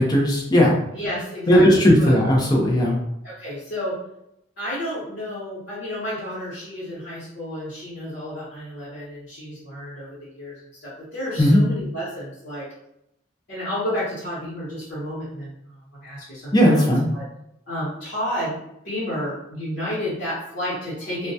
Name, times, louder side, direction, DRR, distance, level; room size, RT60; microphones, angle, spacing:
voice 1, 0.0-0.8 1.5-2.9 11.4-11.6 16.5-17.1, equal, 20° left, -3 dB, 0.5 m, -16 dB
voice 2, 0.9-2.1 3.2-4.0 4.6-12.7 13.5-17.2 17.7-18.6 18.8-21.3, equal, 60° left, -10 dB, 0.9 m, -31 dB
2.2 x 2.1 x 2.6 m, 0.80 s
head